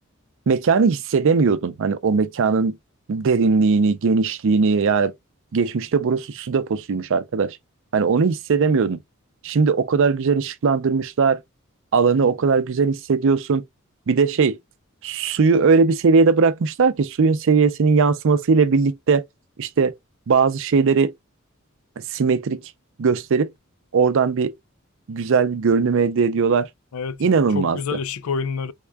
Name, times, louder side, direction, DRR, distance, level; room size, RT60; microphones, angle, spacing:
voice 1, 0.5-2.8 3.1-5.1 5.5-7.6 7.9-9.0 9.4-11.4 11.9-13.6 14.1-14.6 15.0-19.2 19.6-19.9 20.3-21.1 22.1-22.6 23.0-23.5 23.9-24.6 25.1-26.7 27.2-27.8, right 5 dB, 65° right, 0.5 m, -19 dB
voice 2, 26.9-28.7, left 5 dB, 75° left, 0.4 m, -28 dB
3.6 x 2.3 x 3.2 m
head